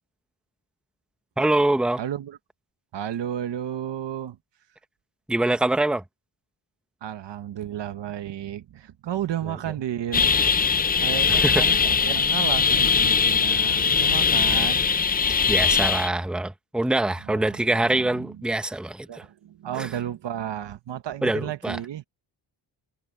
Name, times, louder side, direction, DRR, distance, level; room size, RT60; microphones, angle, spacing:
voice 1, 1.4-2.0 5.3-6.0 11.3-11.6 15.5-19.2 19.8-19.9 21.2-21.8, right 2 dB, ahead, 0.9 m, -24 dB
voice 2, 2.0-2.4 2.9-4.4 7.0-10.3 11.0-14.9 17.3-18.4 19.1-22.0, right 10 dB, 65° right, 1.1 m, -33 dB
sound 1, 10.1-16.1, left 6 dB, 20° left, 0.3 m, -21 dB
wide cardioid pair, 165°, 46 cm